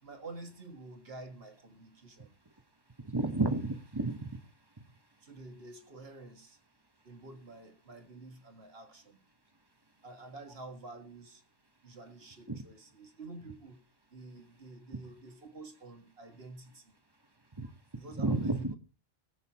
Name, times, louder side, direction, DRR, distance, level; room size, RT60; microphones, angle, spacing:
voice 1, 0.0-2.4 5.2-6.6 7.0-9.2 10.0-11.4 11.8-13.8 14.1-16.9 18.0-18.8, right 2 dB, 60° right, 1.9 m, -49 dB
voice 2, 3.0-4.3 12.5-12.6 17.6-17.7 18.2-18.7, right 2 dB, 25° right, 1.0 m, -31 dB
23.5 x 7.9 x 2.8 m
omnidirectional pair, 1.2 m